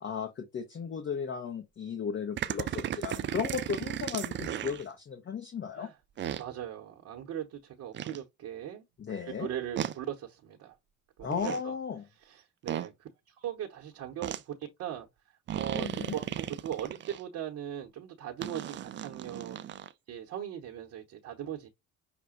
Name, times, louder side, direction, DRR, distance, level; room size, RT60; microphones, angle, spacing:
voice 1, 0.0-5.9 9.0-9.5 11.2-12.0 15.7-16.1, left 6 dB, 30° left, 0.9 m, -35 dB
sound 1, 2.4-4.8 6.2-6.4 7.9-8.2 9.8-9.9 11.2-11.6 12.7-12.9 14.2-14.4 15.5-17.2 18.4-19.9, right 10 dB, 30° right, 0.5 m, -35 dB
voice 2, 6.4-10.7 11.2-11.7 12.2-13.1 13.4-14.5 14.8-15.1 15.5-19.6 20.1-21.7, right 10 dB, 50° right, 1.0 m, -39 dB
5.9 x 2.1 x 3.9 m
hypercardioid pair, 60°, 37 cm